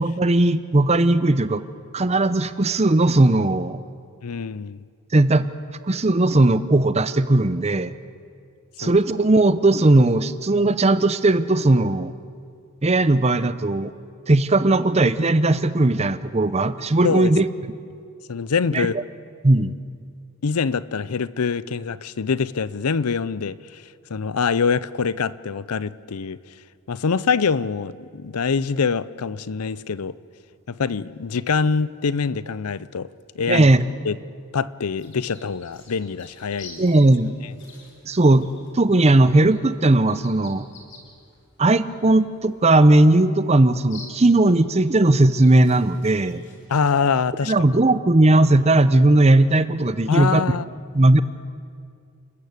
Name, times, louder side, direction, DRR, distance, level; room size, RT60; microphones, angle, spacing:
voice 1, 0.0-1.6 1.9-3.8 5.1-5.5 5.8-7.9 8.8-12.1 12.8-13.9 14.3-17.4 18.7-19.0 19.4-19.7 33.5-33.8 36.8-37.3 38.1-38.5 38.7-40.6 41.6-46.4 47.5-50.4 50.9-51.2, right 2 dB, 30° right, 14 dB, 0.7 m, -17 dB
voice 2, 4.2-4.8 8.8-8.9 17.0-17.3 18.3-19.0 20.4-23.8 24.1-26.4 26.9-30.2 30.7-33.1 33.3-33.7 34.0-34.2 34.5-36.9 46.7-47.5 50.1-50.6, left 5 dB, 85° left, 18 dB, 0.6 m, -24 dB
sound 1, 35.0-46.7, left 3 dB, 55° left, 4.1 m, -49 dB
29.5 x 14.0 x 8.3 m, 2.3 s
head